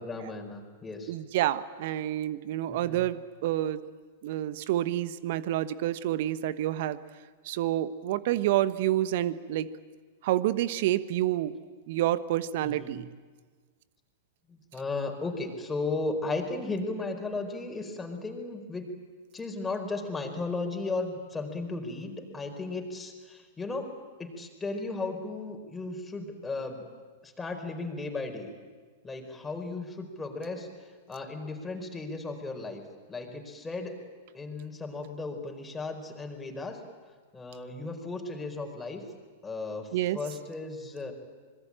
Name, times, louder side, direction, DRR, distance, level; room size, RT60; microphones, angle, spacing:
voice 1, 0.0-1.1 2.7-3.0 12.6-13.0 14.5-18.9 19.3-23.9 24.2-26.8 27.2-28.5 29.0-32.8 33.1-34.0 34.3-36.8 37.3-39.0 39.4-39.9 40.1-41.1, left 3 dB, 10° left, 2 dB, 4.8 m, -35 dB
voice 2, 1.1-3.8 4.2-7.0 7.4-9.7 10.2-11.6 11.9-13.1 39.9-40.2, right 13 dB, 55° right, 14 dB, 1.1 m, -28 dB
26.0 x 21.5 x 9.0 m, 1.5 s
figure-of-eight pair, 100°, 0 cm